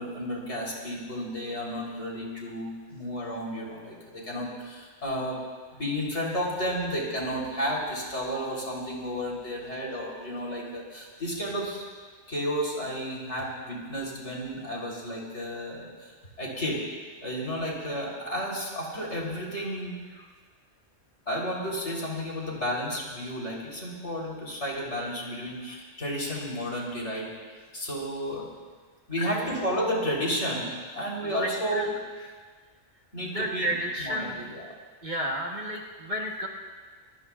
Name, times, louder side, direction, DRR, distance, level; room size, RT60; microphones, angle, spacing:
voice 1, 0.0-5.4 5.7-11.8 12.3-16.8 17.2-20.0 21.3-27.3 27.7-28.5 29.1-31.9 33.1-34.7, equal, 60° left, -3 dB, 3.9 m, -32 dB
voice 2, 31.4-31.8 33.3-34.4 35.0-36.5, equal, 40° right, -1 dB, 1.3 m, -31 dB
24.5 x 18.5 x 2.4 m, 1.5 s
omnidirectional pair, 1.3 m